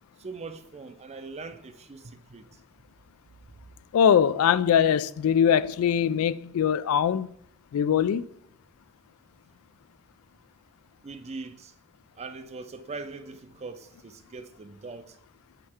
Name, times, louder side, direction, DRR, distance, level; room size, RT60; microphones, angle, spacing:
voice 1, 0.2-2.6 11.0-11.7 12.2-15.2, right 4 dB, 30° right, 0.4 m, -41 dB
voice 2, 3.9-7.3 7.7-8.2, left 8 dB, 85° left, 0.3 m, -22 dB
6.6 x 4.5 x 4.3 m
head